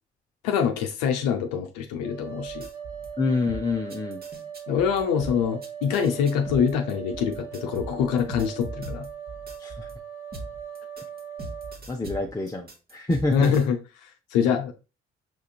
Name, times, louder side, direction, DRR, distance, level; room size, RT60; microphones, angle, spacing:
voice 1, 0.4-2.7 4.7-9.1 13.3-13.8 14.3-14.7, left 7 dB, 70° left, 0.6 m, -25 dB
sound 1, 2.0-11.8, right 8 dB, 75° right, 1.2 m, -39 dB
sound 2, 2.5-3.1 3.5-10.0 10.3-13.6, right 1 dB, 25° right, 1.0 m, -40 dB
voice 2, 3.2-4.2 9.6-9.9 11.9-13.5, left 3 dB, 10° left, 0.5 m, -27 dB
5.0 x 3.1 x 2.3 m
hypercardioid pair, 45°, 34 cm